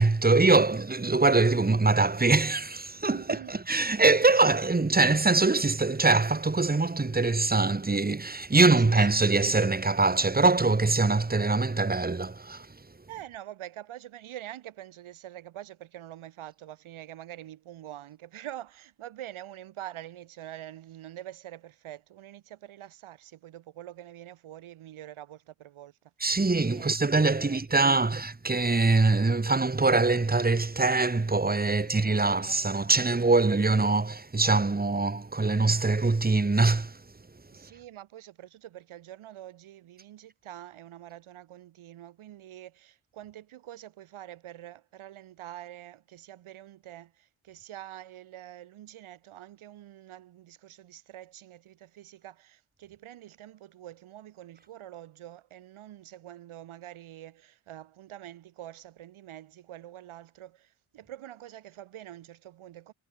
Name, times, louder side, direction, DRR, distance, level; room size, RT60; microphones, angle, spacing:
voice 1, 0.0-12.7 26.2-37.0, right 3 dB, 20° right, 4.3 m, -23 dB
voice 2, 3.1-3.6 8.8-9.5 13.1-26.0 26.7-26.9 27.4-27.8 31.7-33.1 33.4-33.6 37.5-62.9, right 12 dB, 80° right, 6.5 m, -45 dB
cardioid pair, 110°, 48 cm